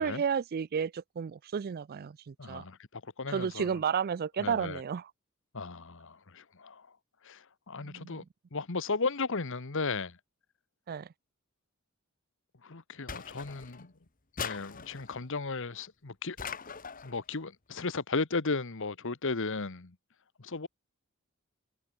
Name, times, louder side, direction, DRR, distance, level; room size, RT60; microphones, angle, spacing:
voice 1, 0.0-2.6 3.3-5.1 7.8-8.2 10.9-11.1, right 7 dB, 45° right, 0.3 m, -32 dB
voice 2, 2.4-3.8 4.4-4.8 5.5-6.9 7.2-8.2 8.5-10.2 12.6-13.9 14.4-16.4 17.0-19.9 20.4-20.7, left 4 dB, 60° left, 1.3 m, -35 dB
sound 1, 13.1-13.9 14.4-15.2 16.4-17.2, left 6 dB, 40° left, 1.7 m, -41 dB
head